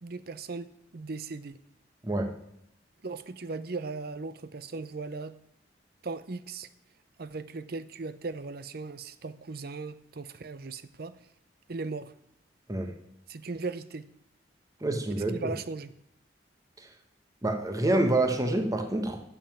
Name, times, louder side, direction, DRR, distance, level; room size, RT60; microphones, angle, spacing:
voice 1, 0.0-1.6 3.0-5.4 6.0-6.7 7.2-11.2 11.7-12.1 13.3-14.1 15.2-15.9, right 3 dB, 60° right, 0.7 m, -38 dB
voice 2, 14.8-15.5 16.8-16.9 17.4-19.2, right 1 dB, 20° right, 1.1 m, -27 dB
8.8 x 7.3 x 8.8 m
head